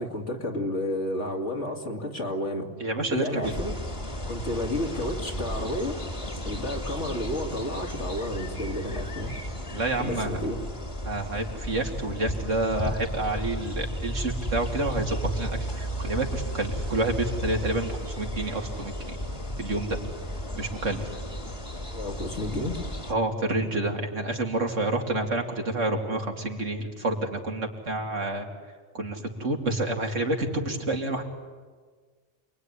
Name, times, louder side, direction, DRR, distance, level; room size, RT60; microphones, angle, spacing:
voice 1, 0.0-2.7 3.1-3.8 4.3-6.0 6.4-9.3 10.0-10.6 21.9-22.8, left 1 dB, 70° left, 2 dB, 2.9 m, -31 dB
voice 2, 2.8-3.5 9.7-10.4 11.0-19.2 19.6-20.0 20.5-21.0 23.1-28.5 28.9-31.2, right 2 dB, 90° right, 2 dB, 3.2 m, -29 dB
sound 1, 3.4-23.1, equal, 25° left, 1.9 m, -34 dB
28.0 x 21.5 x 9.9 m, 1.5 s
omnidirectional pair, 1.2 m